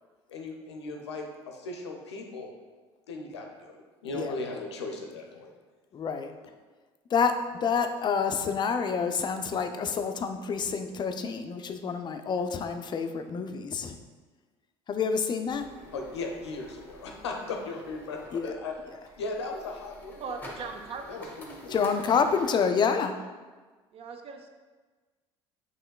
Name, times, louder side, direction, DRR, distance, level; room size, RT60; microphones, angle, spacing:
voice 1, 0.3-2.5 3.1-3.7 4.0-5.5 15.9-18.7 19.2-20.4 21.1-21.7, left 3 dB, 90° left, 2 dB, 0.5 m, -37 dB
voice 2, 5.9-6.3 7.1-14.0 14.9-15.7 18.3-18.5 18.9-19.0 21.7-23.2, left 6 dB, 35° left, 7 dB, 0.4 m, -28 dB
sound 1, 15.5-22.5, equal, 15° left, 1.0 m, -48 dB
voice 3, 20.2-21.4 21.8-21.9 23.9-24.5, right 5 dB, 45° right, 6 dB, 0.5 m, -40 dB
5.5 x 3.1 x 2.3 m, 1.3 s
hypercardioid pair, 65°, 14 cm